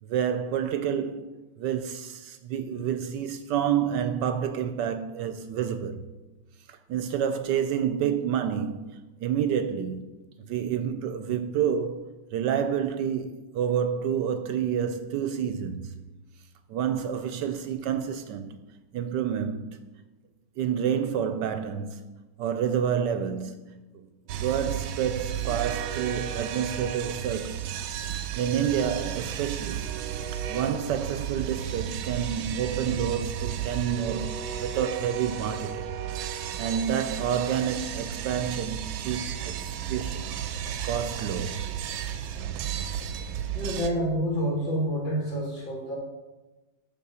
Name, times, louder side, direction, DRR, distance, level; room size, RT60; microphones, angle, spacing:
voice 1, 0.0-1.3 1.6-6.0 6.7-10.0 10.4-16.0 16.7-18.6 18.9-19.8 20.6-22.0 22.4-24.1 24.3-27.8 28.3-29.8 30.3-34.3 34.6-35.9 36.6-40.4 40.8-41.6, right 8 dB, 75° right, 1.1 m, -29 dB
sound 1, 24.3-43.9, right 9 dB, 90° right, 1.4 m, -33 dB
voice 2, 43.5-46.0, equal, 75° left, 2.6 m, -28 dB
7.3 x 6.0 x 5.6 m
omnidirectional pair, 2.1 m